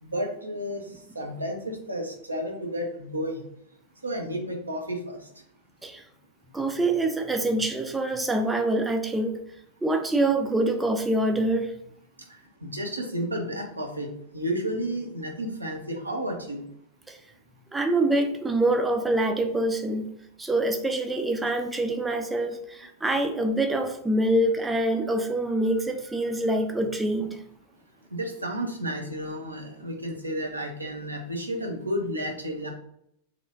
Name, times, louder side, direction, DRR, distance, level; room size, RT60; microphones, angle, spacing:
voice 1, 0.0-3.4 4.0-5.3 12.3-14.1 14.3-16.6 28.1-32.7, equal, 80° right, 2 dB, 0.6 m, -32 dB
voice 2, 6.5-9.4 9.8-11.7 17.1-17.2 17.7-20.1 20.4-27.4, right 1 dB, 10° right, 5 dB, 0.4 m, -25 dB
3.0 x 2.9 x 2.6 m, 0.72 s
figure-of-eight pair, 90°, 0 cm